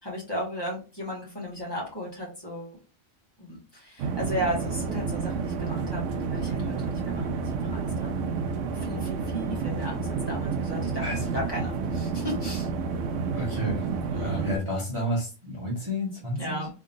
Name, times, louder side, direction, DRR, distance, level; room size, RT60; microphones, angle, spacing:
voice 1, 0.0-2.8 3.4-8.1 8.7-12.7 14.1-14.5 16.4-16.7, equal, 20° left, -4 dB, 2.0 m, -35 dB
sound 1, 4.0-14.6, right 5 dB, 80° right, 1.0 m, -30 dB
voice 2, 11.0-11.3 13.3-13.8 14.2-16.6, equal, 25° right, -5 dB, 1.5 m, -30 dB
3.7 x 3.5 x 2.7 m, 0.33 s
omnidirectional pair, 1.3 m